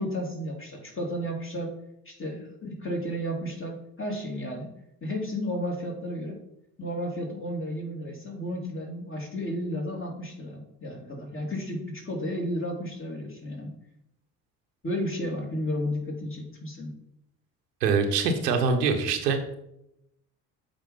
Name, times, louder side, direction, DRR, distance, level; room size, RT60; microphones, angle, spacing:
voice 1, 0.0-1.7 2.0-4.8 5.0-6.4 6.8-13.7 14.8-17.0, equal, 25° left, 1 dB, 2.8 m, -33 dB
voice 2, 17.8-19.4, right 5 dB, 85° right, 6 dB, 1.0 m, -24 dB
7.8 x 4.3 x 5.6 m, 0.81 s
hypercardioid pair, 55°, 47 cm